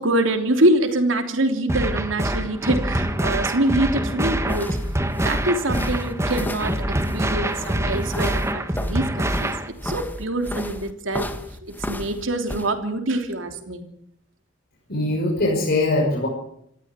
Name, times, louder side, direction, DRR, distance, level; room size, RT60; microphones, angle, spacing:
voice 1, 0.0-4.8 5.2-6.7 7.1-9.5 9.8-11.3 11.6-13.8, right 1 dB, 75° right, 5 dB, 3.3 m, -24 dB
sound 1, 1.7-9.7, right 1 dB, 15° right, 1.6 m, -25 dB
sound 2, 4.0-12.7, left 1 dB, 10° left, 1.8 m, -33 dB
voice 2, 14.9-16.3, left 2 dB, 55° left, -1 dB, 5.8 m, -21 dB
27.0 x 14.5 x 8.3 m, 0.72 s
head